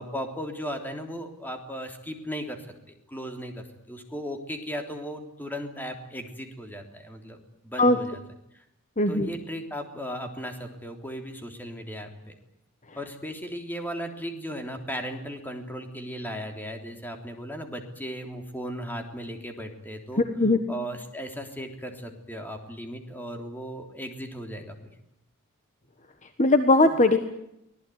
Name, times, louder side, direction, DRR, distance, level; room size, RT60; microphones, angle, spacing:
voice 1, 0.0-2.6 2.9-8.2 8.6-8.7 9.1-12.4 13.0-20.2 20.7-24.8, equal, 10° left, 4 dB, 3.5 m, -36 dB
voice 2, 9.0-9.3 20.4-20.6 26.4-27.2, left 2 dB, 35° left, 8 dB, 1.5 m, -19 dB
24.5 x 18.5 x 9.4 m, 0.81 s
head